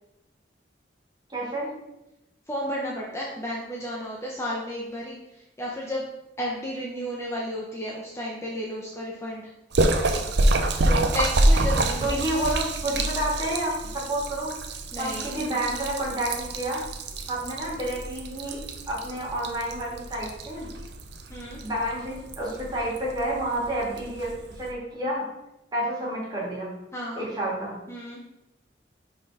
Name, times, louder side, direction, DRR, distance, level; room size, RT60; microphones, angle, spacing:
voice 1, 1.3-1.7 12.0-14.5 15.0-16.8 17.3-18.6 18.9-20.7 21.6-25.3 25.7-26.8 27.2-27.8, right 1 dB, 25° right, -5 dB, 2.5 m, -29 dB
voice 2, 2.5-6.1 6.4-9.5 10.8-12.2 14.9-15.5 21.3-21.6 26.9-27.3 27.9-28.2, equal, 15° left, -3 dB, 0.9 m, -32 dB
Splash splatter, 9.7-24.7, right 2 dB, 65° right, 0.7 m, -27 dB
5.5 x 4.5 x 4.9 m, 0.92 s
head